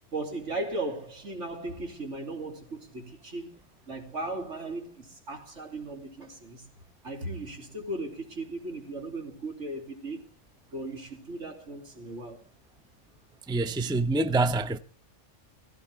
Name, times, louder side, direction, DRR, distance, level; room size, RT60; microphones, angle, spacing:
voice 1, 0.1-3.5 3.9-6.6 7.0-10.2 10.7-12.4, right 2 dB, 75° right, 3.4 m, -37 dB
voice 2, 13.5-14.8, right 3 dB, 5° right, 0.6 m, -26 dB
16.5 x 15.5 x 3.5 m
omnidirectional pair, 1.2 m